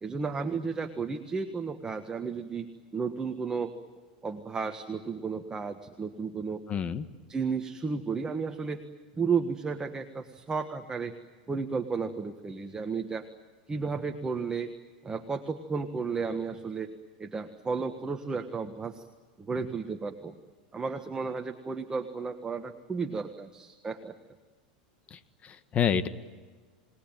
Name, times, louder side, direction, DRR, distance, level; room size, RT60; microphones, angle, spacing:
voice 1, 0.0-2.7 2.9-3.7 4.2-6.6 7.3-8.8 9.2-11.1 11.5-13.3 13.7-14.7 15.0-16.9 17.2-19.0 19.4-20.3 20.7-24.2, right 5 dB, 15° right, 6 dB, 1.6 m, -33 dB
voice 2, 6.7-7.0 25.1-26.1, left 8 dB, 30° left, 12 dB, 1.6 m, -29 dB
30.0 x 20.0 x 9.1 m, 1.4 s
hypercardioid pair, 110°, 4 cm